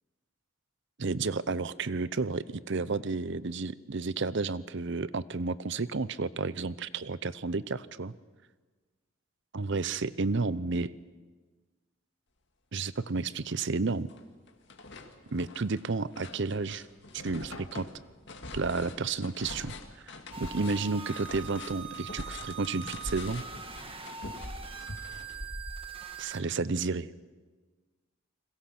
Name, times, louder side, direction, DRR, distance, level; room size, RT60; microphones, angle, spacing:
voice 1, 1.0-8.1 9.5-10.9 12.7-14.1 15.3-16.9 17.1-17.9 18.5-19.7 20.0-23.4 26.2-27.1, right 3 dB, 60° right, 17 dB, 0.7 m, -31 dB
sound 1, 13.0-13.1 13.5-14.2 14.5-26.1, left 2 dB, 55° left, 2.1 m, -44 dB
sound 2, 17.5-19.7 20.4-21.8, left 2 dB, 85° left, 2.0 m, -53 dB
sound 3, 20.3-26.4, right 6 dB, 25° right, 1.5 m, -43 dB
29.5 x 21.5 x 6.1 m, 1.4 s
head